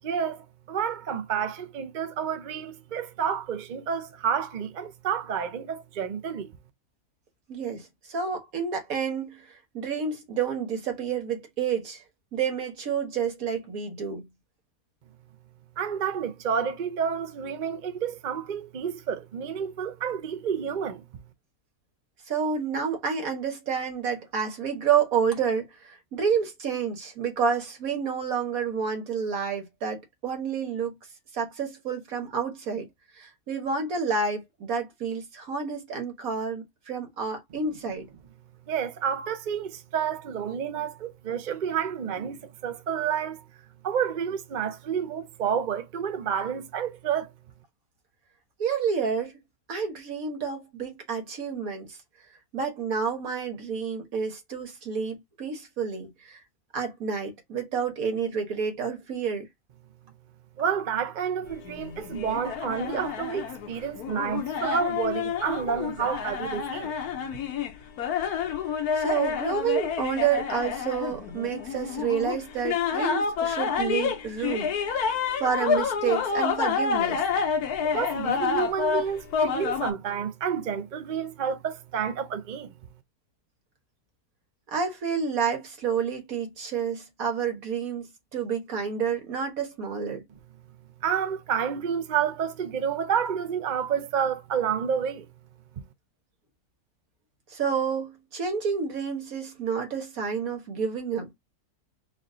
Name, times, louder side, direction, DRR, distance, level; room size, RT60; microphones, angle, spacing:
voice 1, 0.0-6.5 15.8-21.0 38.7-43.4 43.8-47.3 60.6-66.9 77.8-82.7 91.0-95.3 95.8-95.9, right 7 dB, 50° right, 0.6 m, -29 dB
voice 2, 7.5-12.0 12.3-14.3 22.3-31.0 31.3-32.9 33.2-38.1 48.6-49.4 49.7-52.0 52.5-56.4 56.7-59.5 68.9-74.7 75.4-77.2 84.7-90.2 97.5-101.3, right 6 dB, 65° right, 1.7 m, -29 dB
sound 1, 61.5-79.9, left 6 dB, 80° left, 1.3 m, -29 dB
4.5 x 2.4 x 3.7 m
omnidirectional pair, 1.6 m